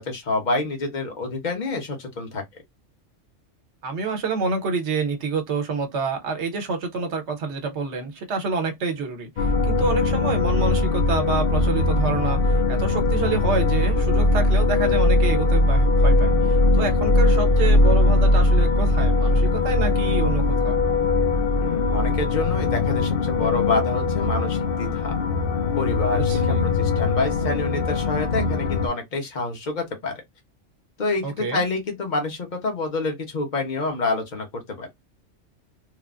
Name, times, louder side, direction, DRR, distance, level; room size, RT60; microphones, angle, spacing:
voice 1, 0.0-2.4 21.6-25.1 25.8-30.1 31.0-34.9, left 3 dB, 40° left, 1.0 m, -27 dB
voice 2, 3.8-20.8 26.2-26.7 31.2-31.6, right 4 dB, 65° right, 1.1 m, -28 dB
sound 1, 9.4-28.9, left 2 dB, 60° left, 0.6 m, -20 dB
3.3 x 2.1 x 2.4 m
omnidirectional pair, 1.3 m